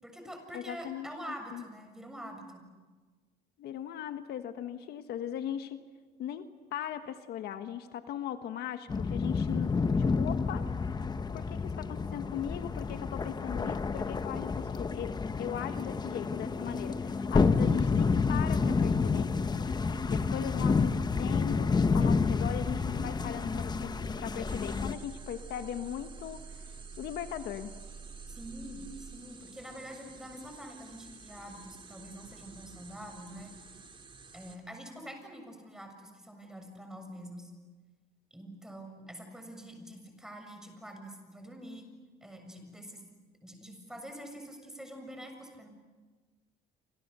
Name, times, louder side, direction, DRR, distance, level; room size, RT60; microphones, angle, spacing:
voice 1, 0.0-2.6 19.8-20.3 28.3-33.5 34.3-37.5 38.3-41.9 42.2-43.0 43.4-45.7, equal, 5° right, 4 dB, 6.9 m, -46 dB
voice 2, 0.5-1.1 1.5-1.6 3.6-5.8 6.2-10.7 11.3-19.3 20.1-26.6 27.0-27.7, left 10 dB, 75° left, 8 dB, 1.5 m, -39 dB
sound 1, 8.9-24.9, left 4 dB, 25° left, 1.1 m, -29 dB
sound 2, 19.7-29.2, right 5 dB, 50° right, 3.4 m, -48 dB
sound 3, 24.4-34.6, right 4 dB, 30° right, 3.5 m, -52 dB
29.0 x 27.0 x 6.9 m, 1.3 s
cardioid pair, 110°, 17 cm